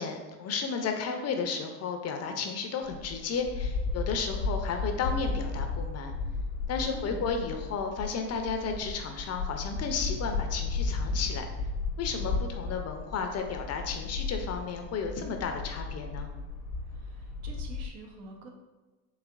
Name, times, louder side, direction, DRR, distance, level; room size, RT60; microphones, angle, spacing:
voice 1, 0.0-6.1 6.7-11.4 12.0-16.3, left 5 dB, 35° left, 5 dB, 0.4 m, -33 dB
sound 1, 2.8-17.9, left 4 dB, 70° left, 0.7 m, -34 dB
voice 2, 6.9-7.2 16.9-18.5, right 3 dB, 80° right, 1 dB, 0.8 m, -46 dB
4.0 x 2.9 x 2.4 m, 1.2 s
hypercardioid pair, 75°, 47 cm